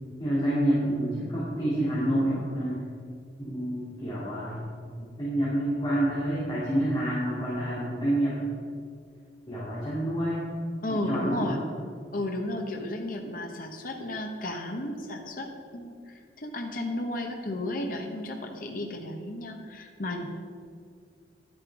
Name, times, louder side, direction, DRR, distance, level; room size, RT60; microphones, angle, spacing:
voice 1, 0.2-2.8 3.4-4.6 5.0-8.3 9.5-10.4 10.9-11.6, right 1 dB, 25° left, -10 dB, 2.9 m, -28 dB
voice 2, 10.8-11.6 12.1-15.5 15.7-20.3, left 1 dB, 50° left, 2 dB, 1.1 m, -33 dB
11.0 x 9.7 x 4.8 m, 2.2 s
head